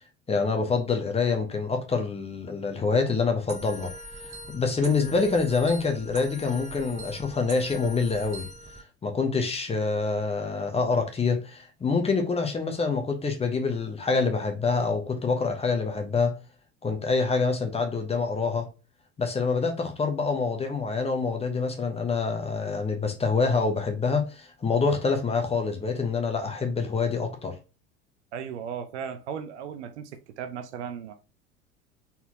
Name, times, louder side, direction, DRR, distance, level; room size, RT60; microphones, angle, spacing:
voice 1, 0.3-3.9 4.2-8.5 9.0-16.3 16.8-18.7 19.2-27.5, left 4 dB, 15° left, 1.0 m, -26 dB
sound 1, 3.5-8.8, right 1 dB, 20° right, 1.4 m, -41 dB
voice 2, 28.3-31.1, right 7 dB, 60° right, 0.7 m, -36 dB
4.3 x 4.1 x 2.8 m
figure-of-eight pair, 75°, 39 cm